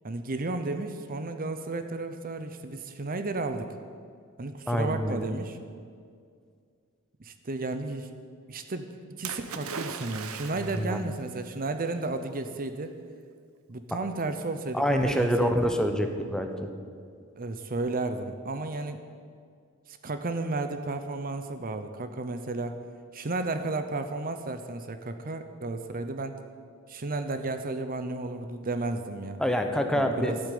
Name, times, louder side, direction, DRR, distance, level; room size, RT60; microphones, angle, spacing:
voice 1, 0.0-3.7 4.4-5.6 7.2-8.1 8.5-8.9 9.2-13.0 13.7-15.8 17.3-19.0 19.9-22.8 23.1-26.4 26.9-29.4 29.9-30.4, right 2 dB, 40° right, 9 dB, 0.8 m, -33 dB
voice 2, 4.7-5.3 10.8-11.0 14.7-16.7 29.4-30.4, equal, 5° left, 5 dB, 1.0 m, -26 dB
Splash splatter, 9.2-11.0 12.0-12.1, right 5 dB, 80° right, 1.0 m, -38 dB
12.5 x 8.7 x 9.4 m, 2.2 s
head